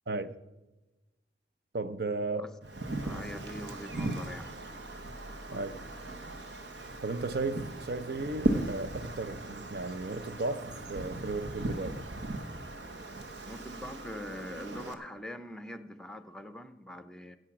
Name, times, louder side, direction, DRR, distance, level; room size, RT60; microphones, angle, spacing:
voice 1, 1.7-2.5 5.5-5.8 7.0-12.1, right 3 dB, 60° right, 0.7 m, -35 dB
Wind, 2.6-14.9, right 1 dB, 75° right, 1.2 m, -37 dB
voice 2, 3.0-4.8 5.5-5.7 13.4-17.4, left 1 dB, 5° left, 0.6 m, -43 dB
16.0 x 7.9 x 6.0 m
head